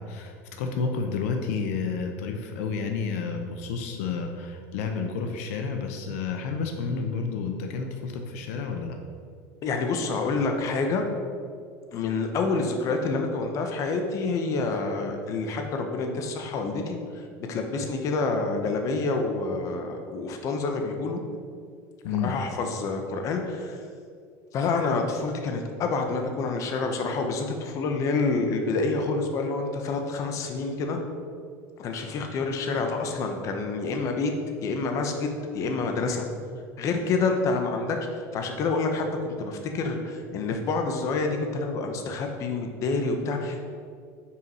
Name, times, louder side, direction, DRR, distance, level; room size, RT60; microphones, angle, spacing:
voice 1, 0.0-9.0 22.0-22.3, left 5 dB, 80° left, 5 dB, 0.7 m, -30 dB
voice 2, 9.6-11.0 11.9-17.2 17.5-21.2 22.1-23.8 24.5-31.0 31.8-34.3 34.6-36.2 36.8-43.7, left 3 dB, 45° left, 4 dB, 0.9 m, -28 dB
5.6 x 4.6 x 5.4 m, 2.2 s
supercardioid pair, 135°, 8 cm